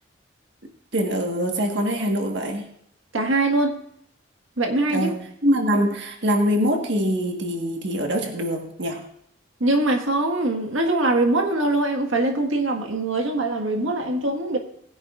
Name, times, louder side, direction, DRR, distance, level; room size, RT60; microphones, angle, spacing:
voice 1, 0.9-2.7 4.9-9.0, equal, 55° right, 2 dB, 1.6 m, -24 dB
voice 2, 3.1-3.8 4.6-5.1 9.6-14.6, right 2 dB, 75° right, 3 dB, 1.7 m, -22 dB
20.0 x 10.5 x 2.5 m, 0.73 s
head